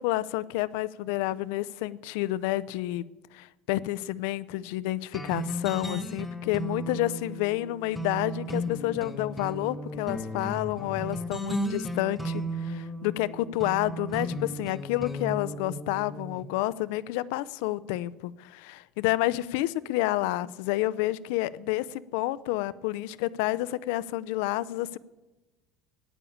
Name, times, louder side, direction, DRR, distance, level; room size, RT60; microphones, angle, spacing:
voice 1, 0.0-3.0 3.3-25.0, left 16 dB, 80° left, 18 dB, 0.5 m, -29 dB
sound 1, 5.1-16.4, right 1 dB, 5° left, 1.0 m, -35 dB
12.0 x 10.0 x 8.6 m, 1.1 s
cardioid pair, 165°, 0 cm